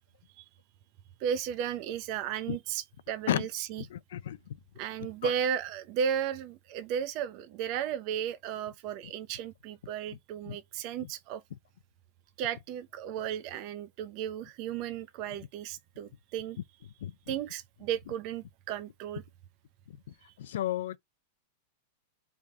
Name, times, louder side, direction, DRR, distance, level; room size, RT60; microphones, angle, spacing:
voice 1, 1.2-3.9 4.8-11.4 12.4-16.6 17.3-19.2, right 8 dB, 35° right, 0.6 m, -34 dB
voice 2, 3.9-4.4 10.5-10.6 17.0-17.1 20.4-21.0, left 12 dB, 75° left, 0.5 m, -31 dB
3.6 x 3.5 x 4.2 m
supercardioid pair, 165°, 0 cm